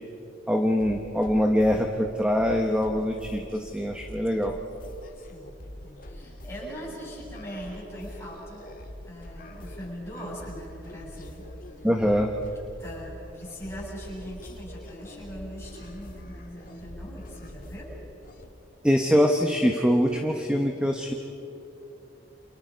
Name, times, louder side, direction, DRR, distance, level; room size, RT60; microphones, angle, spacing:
voice 1, 0.5-4.5 11.8-12.3 18.8-21.1, equal, 5° right, 3 dB, 1.1 m, -23 dB
sound 1, 0.8-18.5, left 1 dB, 45° left, 1.9 m, -44 dB
voice 2, 5.1-5.6 5.8-8.7 9.0-11.9 12.8-17.9, equal, 15° left, -6 dB, 7.9 m, -41 dB
29.5 x 27.5 x 5.3 m, 2.9 s
head